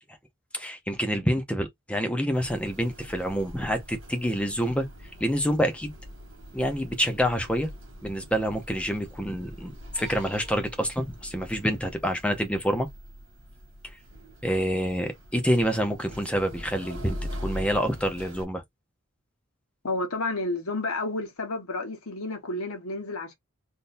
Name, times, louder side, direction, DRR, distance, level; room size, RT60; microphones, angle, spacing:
voice 1, 0.5-4.9 5.2-5.9 6.5-7.7 8.0-12.9 13.8-14.0 14.4-18.6, equal, 5° left, 0.7 m, -27 dB
sound 1, 2.3-18.5, equal, 60° right, 1.8 m, -42 dB
voice 2, 19.8-23.3, left 2 dB, 90° left, 1.2 m, -31 dB
3.7 x 2.6 x 2.6 m
head